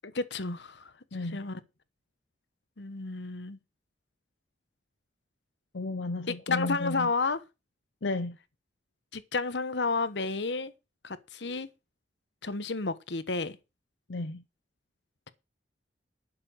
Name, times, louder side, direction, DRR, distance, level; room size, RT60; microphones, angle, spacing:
voice 1, 0.0-0.9 1.2-1.6 2.8-3.6 6.3-7.4 9.1-10.7 11.0-11.7 12.4-13.6, left 3 dB, 70° left, 1.1 m, -31 dB
voice 2, 1.1-1.5 5.7-7.1 8.0-8.4 14.1-14.4, left 2 dB, 85° left, 0.8 m, -33 dB
11.5 x 6.9 x 6.4 m
head